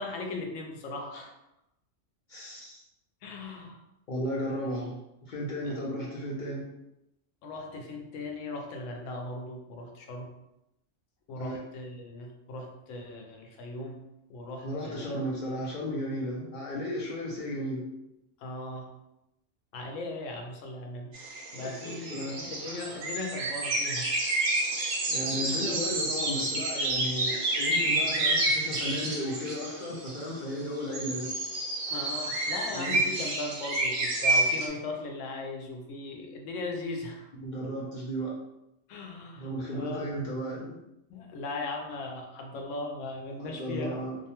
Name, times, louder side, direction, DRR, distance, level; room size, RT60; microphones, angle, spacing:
voice 1, 0.0-1.4 3.2-3.8 7.4-10.3 11.3-14.0 14.3-15.2 18.4-18.9 19.7-21.2 21.5-24.1 25.5-25.6 31.9-37.3 38.9-40.1 41.1-44.0, left 2 dB, 90° left, 2 dB, 0.9 m, -38 dB
voice 2, 2.3-2.8 4.1-6.6 11.4-11.6 14.6-17.9 21.5-22.4 25.1-31.3 32.7-33.0 37.4-38.3 39.4-40.8 43.4-44.2, equal, 60° left, -4 dB, 0.5 m, -34 dB
sound 1, 21.1-30.3 30.8-34.7, right 2 dB, 70° right, 0.9 m, -29 dB
2.6 x 2.2 x 2.8 m, 0.87 s
omnidirectional pair, 1.3 m